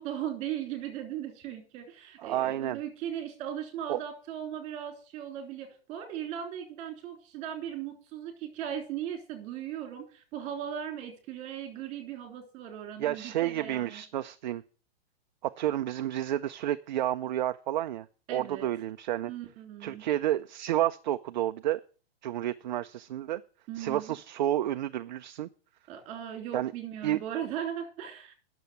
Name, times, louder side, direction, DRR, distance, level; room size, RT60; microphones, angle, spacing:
voice 1, 0.0-14.0 18.3-18.7 19.3-20.0 23.7-24.2 25.9-28.3, right 10 dB, 25° right, 5 dB, 3.2 m, -38 dB
voice 2, 2.2-2.8 3.9-4.0 13.0-14.6 15.4-19.3 19.8-21.8 22.2-23.4 23.8-25.5 26.5-26.7 27.0-27.2, right 12 dB, 50° right, 10 dB, 0.5 m, -30 dB
10.5 x 6.9 x 8.0 m, 0.39 s
hypercardioid pair, 165°, 30 cm